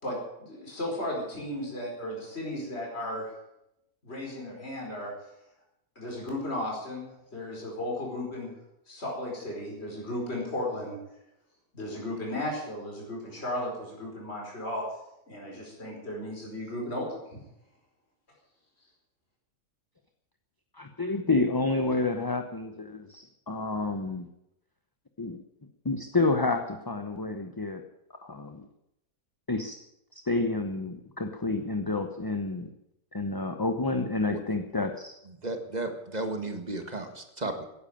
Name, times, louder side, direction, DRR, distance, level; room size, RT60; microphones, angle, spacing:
voice 1, 0.0-3.3 4.0-5.1 5.9-8.6 8.9-11.0 11.7-14.8 15.3-17.4, left 1 dB, 45° left, -2 dB, 5.1 m, -35 dB
voice 2, 20.7-24.3 25.2-25.4 25.8-27.8 28.1-28.6 29.5-29.8 30.1-32.7 33.1-35.2, left 3 dB, 20° left, 5 dB, 0.8 m, -29 dB
voice 3, 35.4-37.7, right 2 dB, 30° right, 6 dB, 1.8 m, -34 dB
15.5 x 10.5 x 8.7 m, 0.83 s
omnidirectional pair, 1.6 m